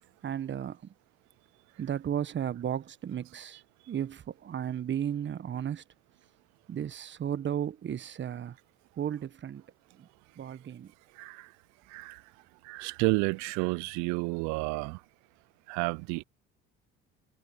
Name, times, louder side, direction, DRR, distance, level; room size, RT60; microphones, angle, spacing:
voice 1, 0.2-0.9 1.8-3.6 3.9-5.8 6.7-8.6 9.0-9.6 10.0-10.1 10.4-10.9, right 9 dB, 40° right, 1.2 m, -34 dB
voice 2, 12.6-15.0 15.7-16.2, right 30 dB, 65° right, 0.6 m, -30 dB
hypercardioid pair, 65°, 31 cm